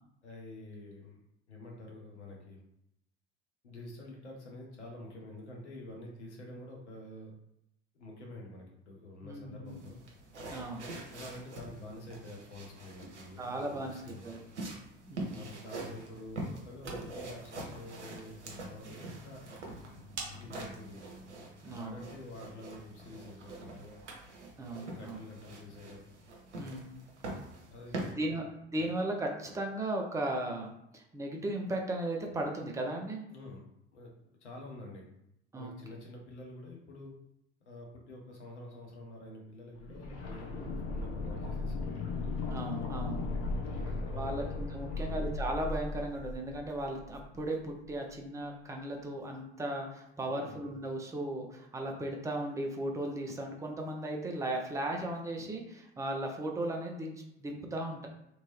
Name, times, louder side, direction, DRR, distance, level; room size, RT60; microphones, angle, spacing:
voice 1, 0.2-1.2 1.5-2.6 3.6-7.3 7.9-10.0 10.6-14.5 15.3-19.4 20.4-21.1 21.7-24.0 24.8-26.1 27.7-28.4 33.3-33.6 33.9-34.1 34.4-35.0 35.5-37.2 37.6-42.0 43.6-44.6 44.9-45.2 50.3-50.6, left 1 dB, 80° left, -1 dB, 0.9 m, -48 dB
voice 2, 9.2-9.9 10.5-10.9 13.4-14.4 15.0-15.5 21.6-22.0 24.6-25.2 26.6-26.9 28.1-28.4 28.7-33.2 35.5-35.7 40.6-40.8 42.5-43.2 44.1-58.1, right 1 dB, 10° right, 1 dB, 0.5 m, -36 dB
sound 1, 9.7-28.1, right 2 dB, 80° right, 0.7 m, -45 dB
sound 2, 16.5-24.5, right 4 dB, 35° right, 1.0 m, -52 dB
sound 3, 39.8-47.6 47.8-47.9, left 3 dB, 45° left, 0.7 m, -37 dB
2.9 x 2.7 x 3.0 m, 0.81 s
figure-of-eight pair, 65°, 34 cm